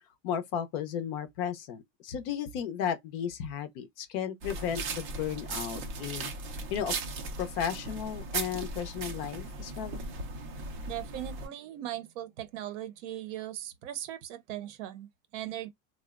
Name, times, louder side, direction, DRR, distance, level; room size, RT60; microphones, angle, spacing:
voice 1, 0.2-6.3 6.7-6.9 7.4-10.0, left 8 dB, 45° left, 0.5 m, -34 dB
sound 1, 4.4-11.5, right 3 dB, 30° right, 0.3 m, -37 dB
voice 2, 10.9-15.7, right 12 dB, 60° right, 0.6 m, -39 dB
3.7 x 2.0 x 2.3 m
supercardioid pair, 170°, 42 cm